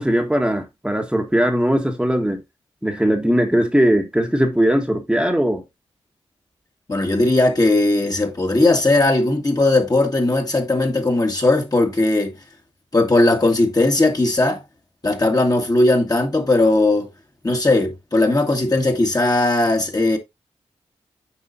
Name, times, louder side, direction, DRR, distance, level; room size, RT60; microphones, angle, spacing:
voice 1, 0.0-2.4 2.8-5.6, equal, 5° right, 1.4 m, -19 dB
voice 2, 6.9-12.3 12.9-14.6 15.0-17.1 17.4-20.2, left 2 dB, 35° left, 1.9 m, -18 dB
7.9 x 4.8 x 2.7 m
cardioid pair, 50°, 12 cm